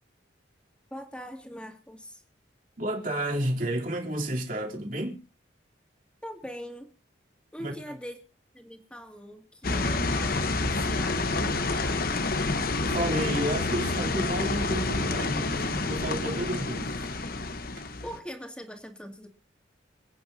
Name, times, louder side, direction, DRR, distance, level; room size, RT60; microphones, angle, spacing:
voice 1, 0.9-2.2 6.2-6.9 7.5-8.2 8.5-12.1 18.0-19.3, equal, 5° left, 2.2 m, -42 dB
voice 2, 2.8-5.2 7.6-7.7 12.9-17.1, right 1 dB, 45° right, 3.1 m, -31 dB
sound 1, 9.6-18.2, left 3 dB, 50° left, 1.0 m, -28 dB
27.5 x 9.1 x 2.7 m
head